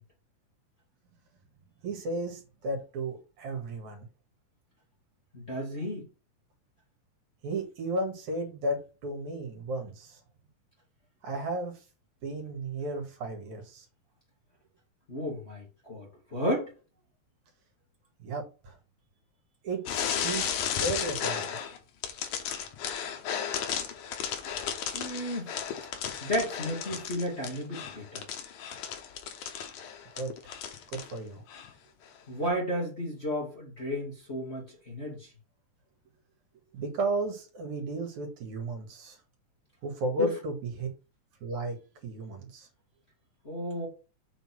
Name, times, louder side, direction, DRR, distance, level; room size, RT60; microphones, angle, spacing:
voice 1, 1.8-4.1 7.4-10.2 11.2-11.7 12.2-13.8 18.2-18.8 19.6-21.6 30.1-30.3 30.9-31.4 36.7-39.2 39.8-40.9 41.4-41.8 42.0-42.7, right 2 dB, 70° right, 3.3 m, -34 dB
voice 2, 5.3-6.1 15.1-16.7 24.9-25.5 26.2-28.3 32.3-35.3 40.2-40.3 43.4-43.9, equal, 25° left, 2.1 m, -33 dB
sound 1, 19.9-21.8 22.0-31.1 31.5-31.7 32.4-32.5, left 8 dB, 80° left, 2.5 m, -34 dB
7.0 x 4.0 x 6.1 m
omnidirectional pair, 3.4 m